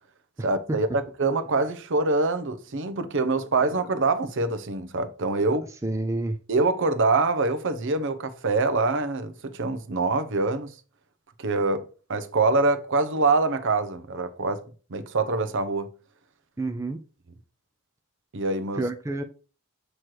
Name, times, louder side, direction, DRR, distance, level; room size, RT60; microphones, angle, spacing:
voice 1, 0.4-5.6 6.5-10.7 11.4-14.6 14.9-15.9 18.3-18.8, right 3 dB, 60° right, 0.7 m, -25 dB
voice 2, 5.8-6.4 16.6-17.0 18.7-19.2, right 2 dB, 15° right, 0.4 m, -28 dB
7.6 x 3.2 x 4.6 m
head